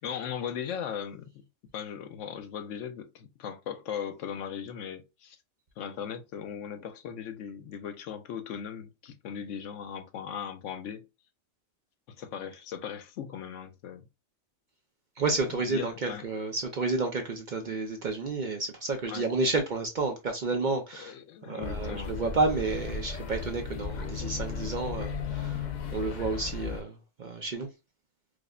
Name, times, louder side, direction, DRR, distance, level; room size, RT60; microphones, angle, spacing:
voice 1, 0.0-1.4 1.7-5.4 5.8-11.1 12.1-14.0 15.5-16.2 19.1-19.3 21.0-22.2, left 8 dB, 75° left, 0.9 m, -38 dB
voice 2, 15.2-21.1 21.5-25.7 25.9-27.7, right 3 dB, 50° right, 0.6 m, -30 dB
sound 1, 21.6-26.8, left 6 dB, 60° left, 0.4 m, -35 dB
4.8 x 2.0 x 2.4 m
omnidirectional pair, 1.3 m